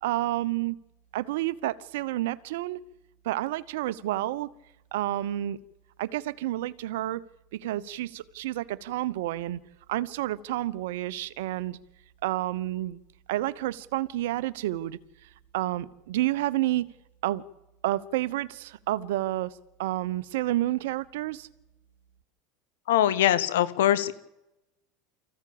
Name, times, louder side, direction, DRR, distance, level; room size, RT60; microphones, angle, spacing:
voice 1, 0.0-0.8 1.1-2.8 3.2-4.5 4.9-5.6 6.0-7.2 7.5-9.6 9.9-11.8 12.2-13.0 13.3-15.0 15.5-16.9 17.2-17.4 17.8-19.5 19.8-21.5, right 15 dB, 75° right, 16 dB, 1.0 m, -29 dB
voice 2, 22.9-24.1, left 12 dB, 80° left, 14 dB, 1.3 m, -22 dB
25.0 x 15.0 x 8.7 m, 0.93 s
hypercardioid pair, 95°, 0 cm